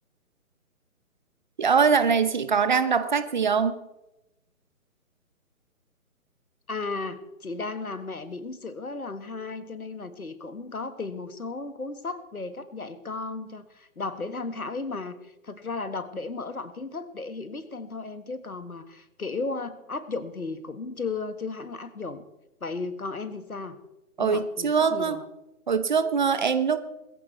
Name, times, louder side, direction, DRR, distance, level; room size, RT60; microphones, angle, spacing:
voice 1, 1.6-3.8 24.2-25.2 25.7-26.8, right 6 dB, 35° right, 12 dB, 0.9 m, -23 dB
voice 2, 6.7-22.2 22.6-23.8 24.2-25.3, left 3 dB, 75° left, 11 dB, 1.8 m, -35 dB
21.5 x 15.0 x 3.3 m, 0.95 s
figure-of-eight pair, 140°, 43 cm